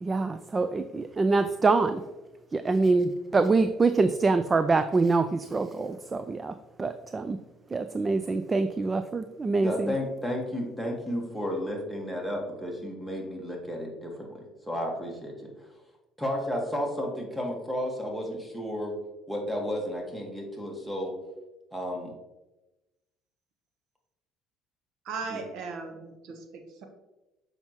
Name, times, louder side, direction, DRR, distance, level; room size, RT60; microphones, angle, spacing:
voice 1, 0.0-2.1 2.5-7.4 7.7-9.9, right 3 dB, 25° right, 10 dB, 0.3 m, -25 dB
voice 2, 9.6-15.5 16.2-19.0 19.3-21.1 21.7-22.1 25.3-25.4, equal, 5° right, 0 dB, 1.7 m, -32 dB
voice 3, 25.0-26.8, right 4 dB, 65° right, 5 dB, 1.0 m, -37 dB
7.2 x 5.4 x 3.0 m, 1.0 s
cardioid pair, 110°, 0 cm